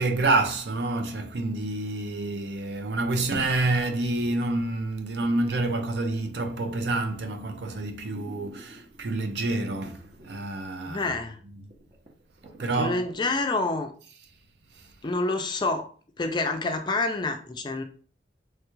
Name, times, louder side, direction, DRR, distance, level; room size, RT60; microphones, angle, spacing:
voice 1, 0.0-11.1 11.6-11.7 12.6-13.0 14.8-14.9, right 2 dB, 75° right, 0.5 m, -28 dB
yet more stomach sounds, 8.1-9.2 9.8-10.5 10.8-10.9 11.4-11.5 11.7-13.6 14.0-14.1, right 2 dB, 35° right, 0.7 m, -48 dB
voice 2, 10.9-11.4 12.8-13.9 15.0-15.8 16.2-17.8, left 3 dB, 25° left, 0.4 m, -27 dB
3.2 x 2.3 x 3.0 m
head